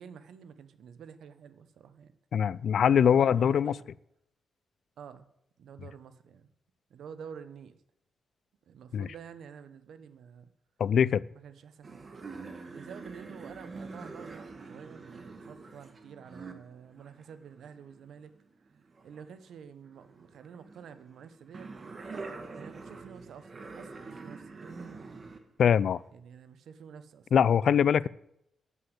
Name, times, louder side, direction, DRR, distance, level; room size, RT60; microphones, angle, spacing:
voice 1, 0.0-2.1 2.8-3.8 5.0-5.3 5.6-6.4 6.9-7.8 8.7-10.5 11.3-12.1 12.7-18.3 18.7-21.7 22.6-23.5 23.7-25.0 26.1-28.1, right 7 dB, 80° right, 11 dB, 1.0 m, -49 dB
voice 2, 2.3-3.8 8.9-9.1 10.8-11.2 25.6-26.0 27.3-28.1, left 8 dB, 65° left, 20 dB, 0.4 m, -23 dB
sound 1, 11.8-19.5 19.9-25.4 25.9-26.0, right 4 dB, 40° right, 1.6 m, -45 dB
9.5 x 8.1 x 7.9 m, 0.78 s
cardioid pair, 115°, 0 cm